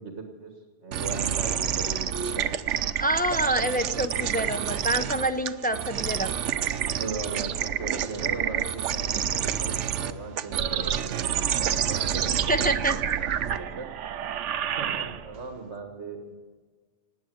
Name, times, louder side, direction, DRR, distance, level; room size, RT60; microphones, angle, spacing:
voice 1, 0.0-2.5 3.2-4.7 6.9-12.8 13.4-13.9 14.6-16.3, right 4 dB, 65° right, 4 dB, 1.8 m, -38 dB
sound 1, 0.9-15.5, right 9 dB, 85° right, 1.0 m, -28 dB
voice 2, 3.0-6.3 12.5-13.0, right 1 dB, 10° left, 7 dB, 0.4 m, -27 dB
19.0 x 8.6 x 7.8 m, 1.5 s
omnidirectional pair, 1.2 m